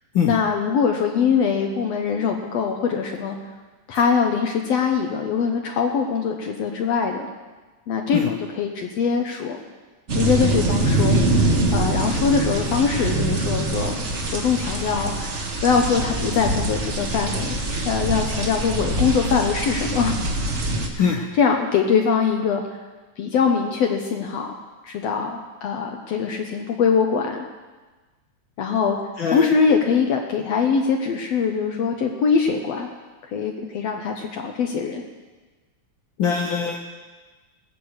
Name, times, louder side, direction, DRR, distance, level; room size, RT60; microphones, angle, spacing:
voice 1, 0.2-3.4 3.9-7.2 7.9-9.6 10.1-15.3 15.6-17.6 17.9-20.2 20.9-22.6 23.2-24.5 24.8-27.5 28.6-29.0 29.3-32.9 33.3-35.0, left 6 dB, 70° left, 3 dB, 1.9 m, -22 dB
sound 1, 10.1-20.9, right 2 dB, 40° right, 1.0 m, -24 dB
voice 2, 36.2-36.8, left 6 dB, 85° left, 3 dB, 1.0 m, -21 dB
18.5 x 6.7 x 8.1 m, 1.3 s
omnidirectional pair, 3.3 m